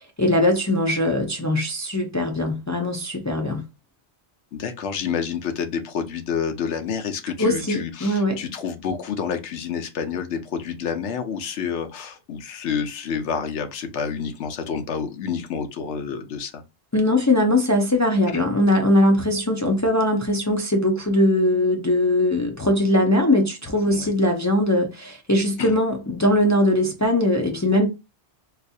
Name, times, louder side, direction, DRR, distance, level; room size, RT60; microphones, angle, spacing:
voice 1, 0.0-3.6 7.4-8.4 16.9-27.9, left 1 dB, 30° left, 0.3 m, -21 dB
voice 2, 4.5-16.6 18.3-18.4 23.9-24.1 25.6-25.8, left 7 dB, 80° left, 0.9 m, -29 dB
4.1 x 2.4 x 2.6 m
omnidirectional pair, 1.2 m